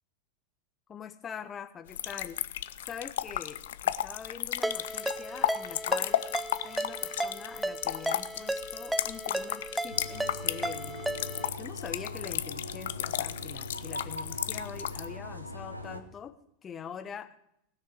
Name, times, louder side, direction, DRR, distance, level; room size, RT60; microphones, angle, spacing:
voice 1, 0.9-2.4 2.9-6.2 6.6-11.0 11.6-16.3 16.6-17.3, left 7 dB, 25° left, 9 dB, 1.0 m, -44 dB
sound 1, 1.9-15.1, left 12 dB, 60° left, 0.5 m, -34 dB
Ringtone, 4.6-11.5, right 1 dB, 5° right, 0.5 m, -35 dB
sound 2, 9.9-16.0, left 2 dB, 85° right, 1.2 m, -41 dB
18.5 x 6.5 x 6.2 m, 0.74 s
figure-of-eight pair, 90°, 0 cm